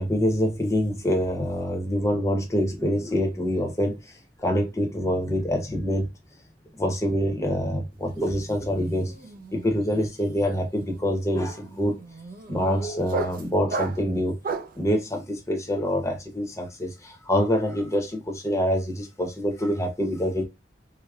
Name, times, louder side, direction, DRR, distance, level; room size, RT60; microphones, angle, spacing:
voice 1, 0.0-4.0 4.4-6.1 6.8-9.1 9.5-12.0 12.5-14.4 14.8-20.4, equal, 15° left, 0.7 m, -25 dB
sound 1, 8.0-8.4 8.6-14.8, right 3 dB, 50° right, 0.4 m, -35 dB
4.8 x 2.1 x 2.3 m
head